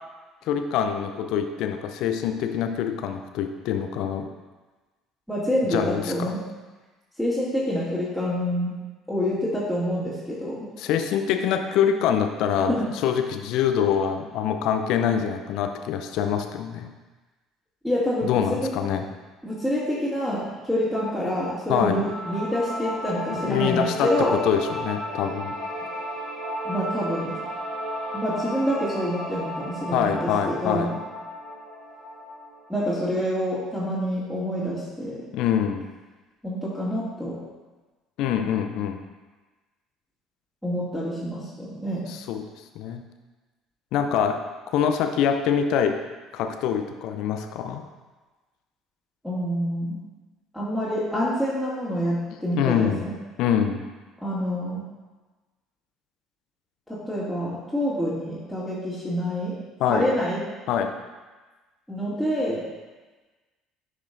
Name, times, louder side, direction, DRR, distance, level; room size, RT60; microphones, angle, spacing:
voice 1, 0.5-4.3 5.7-6.3 10.8-16.9 18.2-19.1 21.7-22.0 23.3-25.5 29.9-30.9 35.3-35.9 38.2-39.0 42.0-42.5 42.8-43.0 43.9-44.4 44.7-46.0 46.3-47.8 52.5-53.1 53.4-53.8 59.8-60.1 60.7-60.9, left 8 dB, 60° left, 6 dB, 0.5 m, -25 dB
voice 2, 5.3-6.4 7.2-8.7 9.1-10.7 12.7-12.8 17.8-18.3 18.6-18.7 19.4-24.3 26.6-27.3 28.1-30.9 32.7-35.2 36.4-37.4 40.6-42.1 49.2-50.0 50.5-53.1 54.2-54.8 56.9-59.5 59.9-60.4 61.9-62.6, equal, ahead, -12 dB, 2.3 m, -27 dB
sound 1, 21.8-32.8, equal, 70° right, 2.0 m, -34 dB
11.0 x 4.8 x 2.6 m, 1.3 s
figure-of-eight pair, 55°, 0 cm